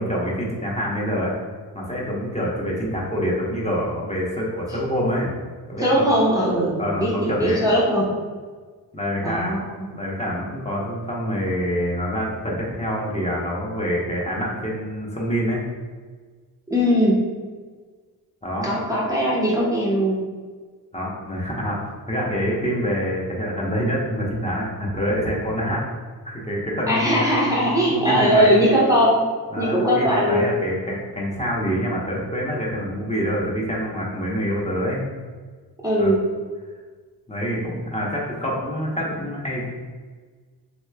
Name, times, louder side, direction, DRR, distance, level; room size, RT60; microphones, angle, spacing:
voice 1, 0.0-1.3 1.7-5.3 5.7-6.1 6.8-7.6 8.9-9.5 9.9-15.6 18.4-18.7 20.9-25.9 26.2-27.6 27.9-28.5 29.5-35.0 36.0-36.1 37.3-39.7, equal, 15° left, -5 dB, 0.9 m, -26 dB
voice 2, 5.8-8.1 9.2-9.9 16.7-17.2 18.6-20.2 26.9-29.2 29.6-30.4 35.8-36.2, equal, 10° right, -6 dB, 0.7 m, -20 dB
3.1 x 3.0 x 2.2 m, 1.5 s
cardioid pair, 45°, 39 cm